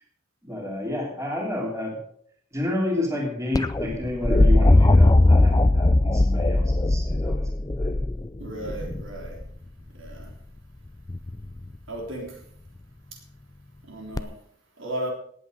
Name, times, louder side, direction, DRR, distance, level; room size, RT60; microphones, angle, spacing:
voice 1, 0.4-2.0 2.5-7.5 7.8-8.0, left 1 dB, 15° right, -1 dB, 3.4 m, -30 dB
sound 1, 3.5-9.5 11.1-11.6 14.2-14.3, left 2 dB, 15° left, 0.4 m, -19 dB
voice 2, 8.4-9.4 10.0-10.3 11.9-12.3 13.9-14.3 14.8-15.1, right 1 dB, 60° right, 1 dB, 3.6 m, -34 dB
18.5 x 8.6 x 5.2 m, 0.65 s
head